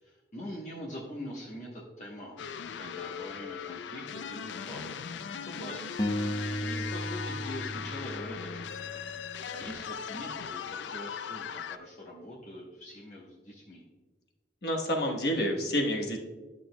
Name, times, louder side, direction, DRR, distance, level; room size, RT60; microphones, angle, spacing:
voice 1, 0.0-5.1 5.4-6.0 6.6-8.7 9.5-13.8, left 1 dB, 40° left, -4 dB, 1.0 m, -43 dB
sound 1, 2.4-11.8, left 7 dB, 85° left, 0.4 m, -39 dB
sound 2, 6.0-9.2, left 1 dB, 25° left, 0.5 m, -35 dB
voice 2, 14.6-16.2, equal, 60° left, 1 dB, 1.1 m, -28 dB
11.5 x 6.2 x 2.2 m, 1.3 s
head